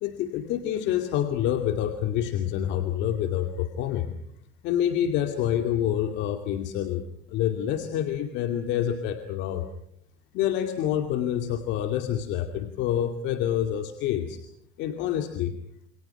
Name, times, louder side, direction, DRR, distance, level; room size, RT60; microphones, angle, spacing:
voice 1, 0.0-4.1 4.6-7.0 7.3-9.7 10.3-14.4 14.8-15.5, left 10 dB, 65° left, 5 dB, 2.5 m, -27 dB
28.5 x 27.0 x 5.9 m, 0.72 s
cardioid pair, 125°, 19 cm